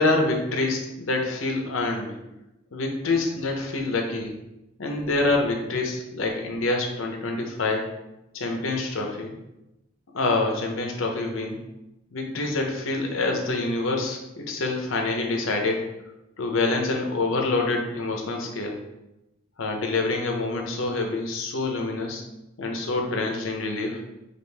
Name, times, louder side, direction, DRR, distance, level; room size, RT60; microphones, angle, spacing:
voice 1, 0.0-2.2 2.7-4.3 4.8-7.9 8.3-9.3 10.1-11.6 12.1-15.9 16.4-18.8 19.6-22.2 22.6-24.0, left 2 dB, 85° left, 2 dB, 0.7 m, -26 dB
5.1 x 2.4 x 3.3 m, 0.93 s
head